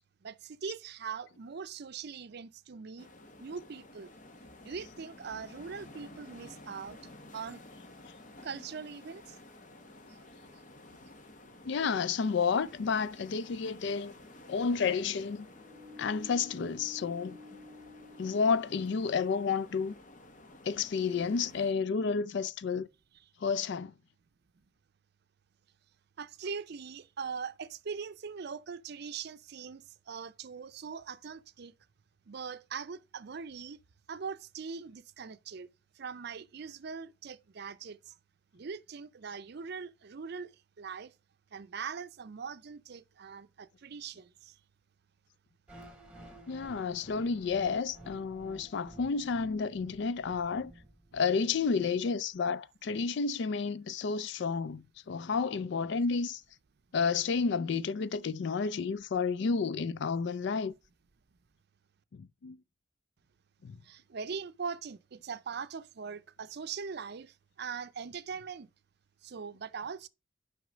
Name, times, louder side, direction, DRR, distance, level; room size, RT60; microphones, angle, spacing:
voice 1, 0.2-3.1 3.4-4.1 4.6-7.0 7.3-7.6 8.4-9.4 11.8-11.9 26.2-31.7 32.3-33.8 34.1-35.7 35.9-38.2 38.5-40.5 40.8-41.1 41.5-44.6 63.8-68.7 69.2-70.1, right 6 dB, 60° right, 0.5 m, -41 dB
sound 1, 3.0-21.7, left 2 dB, 45° left, 1.0 m, -53 dB
voice 2, 11.6-14.1 14.5-15.5 16.0-17.4 18.2-19.9 20.6-22.9 23.4-23.9 46.5-50.7 51.1-56.4 56.9-60.7 62.1-62.6 63.6-63.8, left 5 dB, 65° left, 0.4 m, -31 dB
sound 2, 12.6-19.4, left 2 dB, 10° left, 1.1 m, -54 dB
sound 3, 45.7-51.7, right 1 dB, 5° right, 2.2 m, -52 dB
6.3 x 5.7 x 5.0 m
head